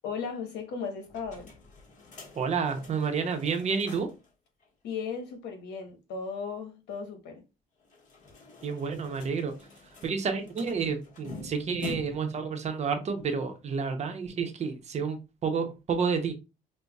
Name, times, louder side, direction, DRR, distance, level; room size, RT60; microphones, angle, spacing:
voice 1, 0.0-1.5 4.8-7.4, left 5 dB, 80° left, 1.0 m, -36 dB
sound 1, 1.0-4.3 4.6-4.7 4.9-5.0 7.8-12.4, left 3 dB, 50° left, 1.4 m, -46 dB
voice 2, 2.4-4.1 8.6-9.5 10.0-16.3, right 5 dB, 40° right, 0.8 m, -30 dB
5.3 x 2.2 x 2.3 m
cardioid pair, 110°, 17 cm